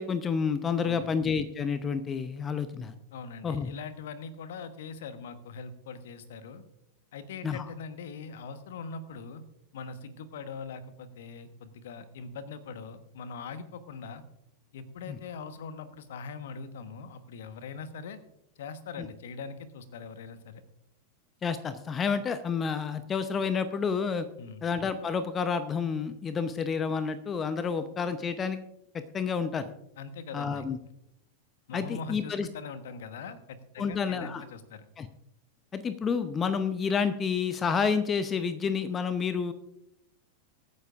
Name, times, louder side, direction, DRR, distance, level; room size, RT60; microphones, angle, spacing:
voice 1, 0.0-2.9 3.4-3.7 7.4-7.6 15.1-15.2 19.0-19.1 21.4-24.3 24.6-28.6 28.9-29.7 30.3-30.8 31.7-32.5 33.8-34.4 35.0-35.1 35.7-39.5, left 6 dB, 20° left, 12 dB, 0.8 m, -29 dB
voice 2, 0.8-1.1 3.1-6.6 7.1-9.4 9.7-14.2 14.7-18.2 18.6-20.6 24.4-24.6 30.0-30.7 31.7-34.8, left 5 dB, 60° left, 11 dB, 1.2 m, -42 dB
23.5 x 9.6 x 2.5 m, 0.80 s
figure-of-eight pair, 90°, 0 cm